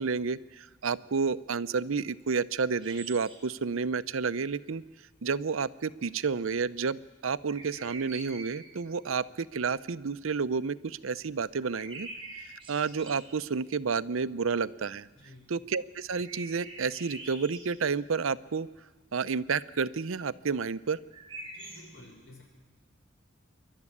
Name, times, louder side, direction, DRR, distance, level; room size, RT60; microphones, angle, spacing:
voice 1, 0.0-4.8 5.2-15.1 15.5-18.7 19.1-21.0, right 5 dB, 75° right, 16 dB, 0.6 m, -30 dB
sound 1, 2.8-3.5 7.5-8.7 11.5-13.4 16.1-17.7 21.1-21.8, right 3 dB, 25° right, 5.7 m, -45 dB
voice 2, 15.1-15.5 21.5-22.4, left 1 dB, 65° left, 0 dB, 6.4 m, -52 dB
26.5 x 12.0 x 9.8 m, 1.3 s
head